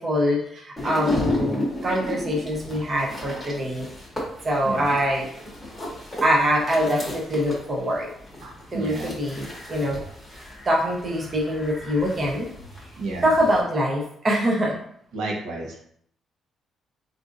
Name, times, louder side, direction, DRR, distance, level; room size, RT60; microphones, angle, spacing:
voice 1, 0.0-3.9 4.4-5.3 6.2-8.1 8.7-10.0 10.7-12.5 13.2-14.7, equal, 25° right, -2 dB, 0.6 m, -24 dB
sound 1, 0.8-13.6, left 1 dB, 5° left, 0.9 m, -34 dB
voice 2, 8.4-9.1 13.0-13.3 15.1-15.8, right 2 dB, 90° right, -1 dB, 0.9 m, -32 dB
4.0 x 2.5 x 2.5 m, 0.66 s
cardioid pair, 165°, 0 cm